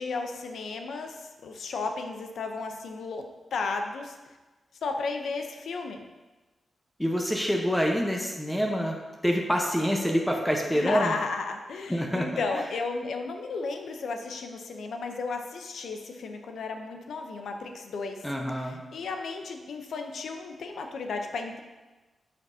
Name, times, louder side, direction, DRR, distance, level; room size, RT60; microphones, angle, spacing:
voice 1, 0.0-3.2 3.5-4.2 4.8-6.0 10.7-18.3 18.6-21.6, left 4 dB, 80° left, 5 dB, 0.6 m, -34 dB
voice 2, 7.0-9.0 9.2-11.1 11.9-12.6 18.2-18.8, equal, 5° left, 0 dB, 0.8 m, -26 dB
8.8 x 5.1 x 2.7 m, 1.2 s
cardioid pair, 70°, 0 cm